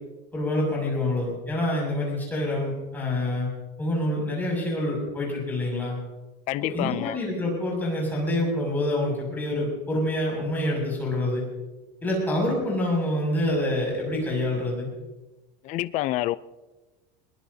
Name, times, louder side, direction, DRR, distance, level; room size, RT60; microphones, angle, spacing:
voice 1, 0.3-3.5 3.8-6.0 6.6-11.4 12.0-14.9, left 1 dB, 10° left, 6.6 m, -26 dB
voice 2, 6.5-7.2 15.6-16.4, left 16 dB, 35° left, 0.5 m, -27 dB
21.5 x 19.0 x 2.8 m
cardioid pair, 170°, 21 cm